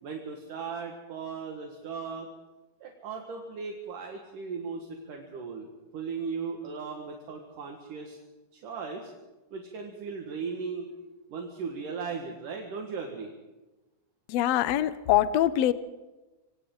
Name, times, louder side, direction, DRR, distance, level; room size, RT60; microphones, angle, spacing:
voice 1, 0.0-2.3 2.8-8.2 8.5-9.1 9.5-10.9 11.3-13.3, right 5 dB, 65° right, 1 dB, 3.3 m, -37 dB
voice 2, 14.3-15.7, left 12 dB, 75° left, 13 dB, 1.5 m, -24 dB
27.5 x 25.0 x 3.9 m, 1.1 s
omnidirectional pair, 4.0 m